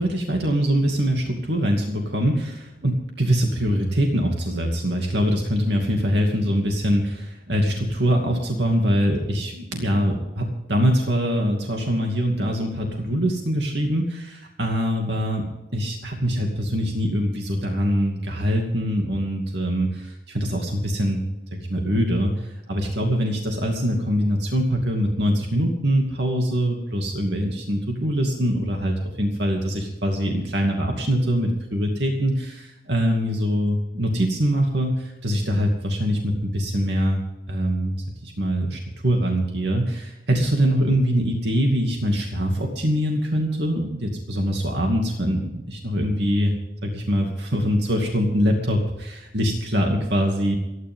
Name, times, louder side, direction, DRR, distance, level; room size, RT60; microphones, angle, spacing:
voice 1, 0.0-15.5 15.7-21.2 21.5-37.9 38.2-46.5 46.8-50.5, equal, 65° right, 1 dB, 2.5 m, -23 dB
28.5 x 11.0 x 3.8 m, 0.96 s
head